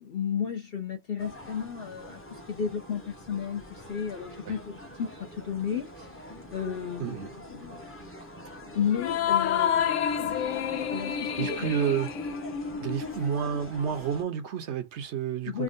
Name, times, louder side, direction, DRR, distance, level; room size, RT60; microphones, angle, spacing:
voice 1, 0.0-7.9 8.7-10.4 10.9-11.7 15.5-15.6, left 7 dB, 55° left, 0.8 m, -33 dB
sound 1, 1.2-14.2, equal, 15° left, 0.6 m, -45 dB
sound 2, 8.9-13.7, left 8 dB, 80° left, 1.0 m, -29 dB
voice 2, 11.4-12.1 12.8-15.6, right 8 dB, 65° right, 0.9 m, -30 dB
3.6 x 2.2 x 2.5 m
omnidirectional pair, 1.3 m